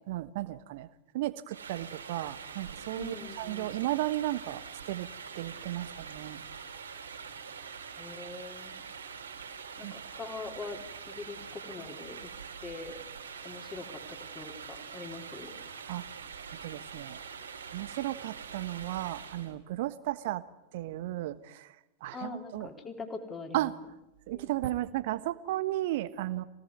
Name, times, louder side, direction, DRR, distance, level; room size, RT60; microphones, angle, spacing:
voice 1, 0.1-0.9 1.1-5.1 5.3-6.4 9.8-9.9 15.9-16.0 16.6-17.2 17.7-20.4 20.7-21.7 22.0-22.7 23.5-23.7 24.3-26.4, right 15 dB, 50° right, 13 dB, 1.4 m, -34 dB
sound 1, 1.5-19.5, right 6 dB, 70° right, 4.3 m, -44 dB
voice 2, 3.0-3.8 8.0-8.8 9.8-10.8 11.1-12.3 12.6-12.9 13.4-15.5 22.1-23.7 24.3-24.5, left 4 dB, 20° left, 4 dB, 3.7 m, -43 dB
25.0 x 18.0 x 9.6 m, 0.92 s
figure-of-eight pair, 90°, 0 cm